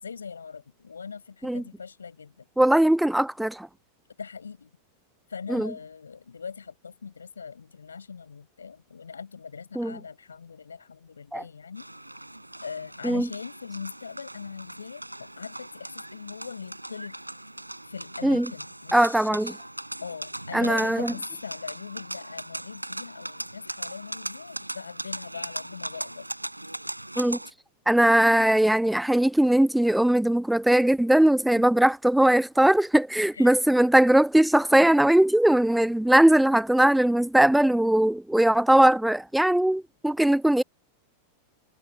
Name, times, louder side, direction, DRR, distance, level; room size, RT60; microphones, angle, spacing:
voice 1, 0.0-2.5 4.2-4.8 5.3-11.9 12.6-17.1 17.9-19.4 20.0-26.3 31.2-31.3 33.3-33.6, left 6 dB, 75° left, 6.9 m, -41 dB
voice 2, 2.6-3.7 5.5-5.7 9.8-10.0 11.3-11.4 13.0-13.3 18.2-18.5 18.9-19.5 20.5-21.1 27.2-27.4 27.9-40.6, right 1 dB, 5° right, 0.4 m, -20 dB
sound 1, 11.8-27.5, right 1 dB, 85° right, 6.0 m, -39 dB
figure-of-eight pair, 90°, 0 cm